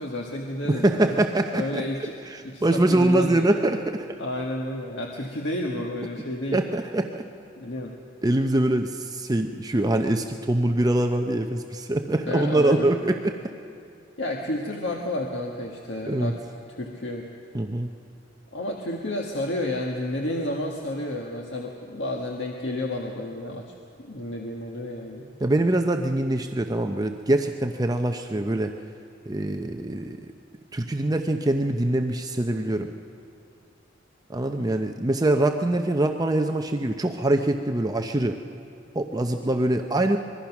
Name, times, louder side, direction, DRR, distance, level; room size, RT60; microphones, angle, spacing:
voice 1, 0.0-1.2 1.5-2.1 2.4-3.5 4.2-6.6 7.6-8.0 12.3-12.9 14.2-16.4 16.7-17.3 18.5-25.3, left 1 dB, 70° left, 0 dB, 1.7 m, -31 dB
voice 2, 0.6-1.8 2.3-4.2 6.5-7.3 8.2-13.4 16.1-16.3 17.5-17.9 25.4-28.7 29.3-30.2 30.7-32.9 34.3-38.4 38.9-40.2, right 1 dB, 20° right, 5 dB, 0.7 m, -24 dB
25.0 x 22.0 x 6.0 m, 2.4 s
head